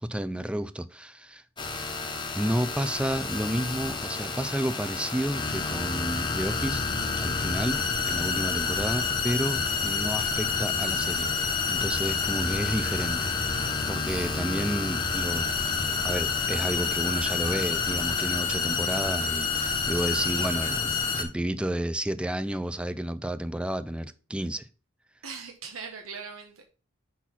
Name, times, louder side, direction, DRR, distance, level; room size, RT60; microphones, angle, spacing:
voice 1, 0.0-1.4 1.8-2.0 2.3-6.8 7.2-11.3 11.7-15.4 16.0-20.9 21.2-24.6, right 1 dB, 5° right, 0.3 m, -31 dB
sound 1, 1.6-21.2, left 4 dB, 20° left, 1.1 m, -29 dB
voice 2, 19.9-21.2 25.2-26.6, right 5 dB, 80° right, 1.0 m, -42 dB
6.1 x 4.3 x 5.7 m
head